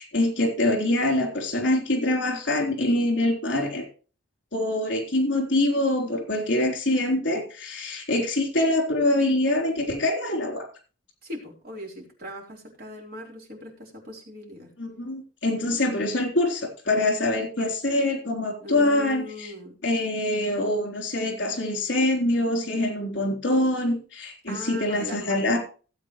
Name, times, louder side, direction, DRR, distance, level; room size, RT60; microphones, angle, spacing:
voice 1, 0.0-3.9 4.5-10.7 14.8-19.5 19.8-25.6, left 1 dB, 65° left, 2 dB, 3.7 m, -24 dB
voice 2, 11.2-14.7 18.6-19.8 24.5-25.6, equal, 50° right, 0 dB, 3.8 m, -39 dB
17.0 x 8.3 x 3.2 m, 0.36 s
head